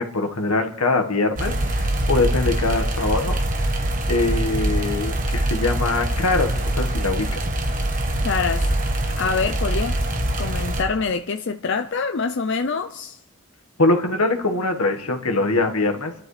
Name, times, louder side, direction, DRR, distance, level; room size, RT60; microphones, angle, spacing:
voice 1, 0.0-3.4 4.1-7.4 13.8-16.1, left 3 dB, 90° left, 4 dB, 1.6 m, -23 dB
sound 1, 1.4-10.8, right 1 dB, 40° right, 1.2 m, -24 dB
voice 2, 8.2-8.7 9.2-10.0 10.4-13.2, left 4 dB, 55° left, 7 dB, 0.5 m, -25 dB
29.5 x 12.0 x 3.3 m, 0.84 s
head